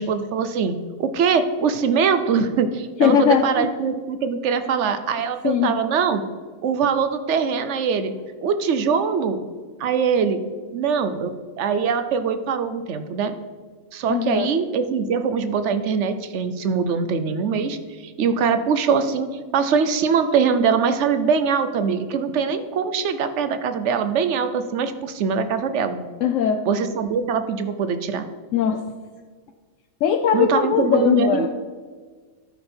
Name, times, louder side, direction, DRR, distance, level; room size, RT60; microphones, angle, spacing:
voice 1, 0.0-6.2 6.6-8.1 8.4-9.4 9.8-10.4 10.7-11.3 11.6-13.3 13.9-19.3 19.5-26.0 26.7-28.3 30.3-31.5, right 6 dB, 65° right, 10 dB, 0.9 m, -22 dB
voice 2, 3.0-3.7 5.4-5.7 14.1-14.5 26.2-26.6 28.5-28.8 30.0-31.5, left 8 dB, 70° left, 6 dB, 0.9 m, -20 dB
12.5 x 5.2 x 4.4 m, 1.5 s
omnidirectional pair, 1.4 m